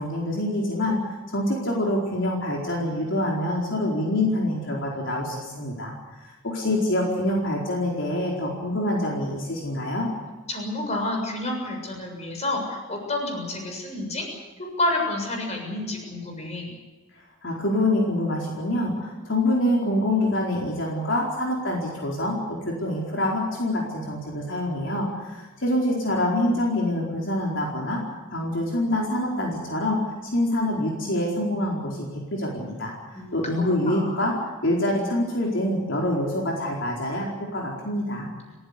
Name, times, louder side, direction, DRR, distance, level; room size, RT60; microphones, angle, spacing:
voice 1, 0.0-5.9 6.2-10.1 17.4-28.0 28.3-32.9 33.3-34.3 34.6-38.3, left 1 dB, 65° left, -2 dB, 4.5 m, -26 dB
voice 2, 10.5-14.3 14.6-16.7 33.1-33.4 33.8-34.3, left 2 dB, 35° left, 2 dB, 7.1 m, -29 dB
29.5 x 15.5 x 8.4 m, 1.3 s
head